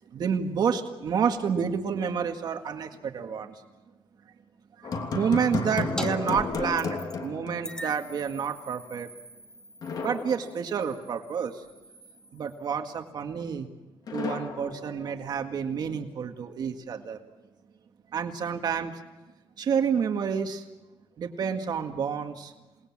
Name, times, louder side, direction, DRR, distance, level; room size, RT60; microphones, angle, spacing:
voice 1, 0.1-3.6 4.8-9.1 10.0-11.6 12.3-13.7 14.1-17.2 18.1-19.0 19.6-20.7 21.2-22.5, right 7 dB, 50° right, 5 dB, 1.8 m, -29 dB
sound 1, 4.8-8.2 8.5-8.6 9.8-11.2 14.1-15.6, left 4 dB, 50° left, 3.0 m, -33 dB
sound 2, 6.0-6.1 6.3-7.3 7.6-12.7, equal, 10° left, 1.4 m, -43 dB
28.5 x 20.0 x 7.4 m, 1.1 s
cardioid pair, 145°, 9 cm